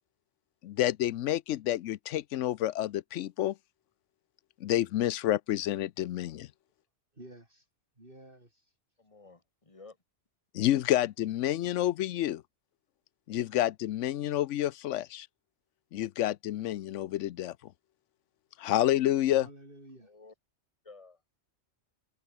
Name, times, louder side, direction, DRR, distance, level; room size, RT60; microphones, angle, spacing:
voice 1, 0.6-3.6 4.6-6.5 10.5-12.4 13.3-15.3 15.9-17.7 18.6-19.5, left 13 dB, 90° left, 0.9 m, -29 dB
voice 2, 7.1-7.7 8.0-8.8 19.4-20.1, right 1 dB, 50° right, 6.6 m, -51 dB
voice 3, 9.0-10.0 20.0-20.3 20.8-21.2, left 3 dB, 30° left, 2.1 m, -53 dB
omnidirectional pair, 1.2 m